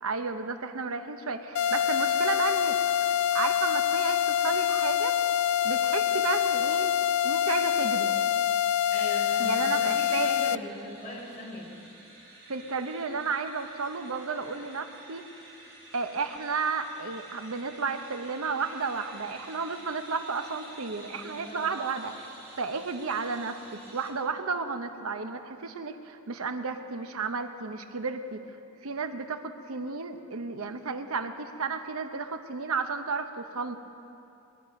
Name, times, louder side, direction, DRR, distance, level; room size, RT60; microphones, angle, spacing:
voice 1, 0.0-2.8 3.3-5.1 5.6-7.0 7.2-8.1 9.4-10.6 12.5-15.3 15.9-22.3 22.6-28.4 28.8-33.8, right 4 dB, 85° right, 7 dB, 0.8 m, -32 dB
sound 1, 1.5-10.6, left 10 dB, 80° left, 0.3 m, -25 dB
voice 2, 8.9-11.7 21.1-21.7, left 1 dB, 35° left, -5 dB, 4.4 m, -40 dB
sound 2, 8.9-24.1, right 2 dB, 50° right, 4.3 m, -50 dB
21.5 x 11.0 x 5.2 m, 2.7 s
head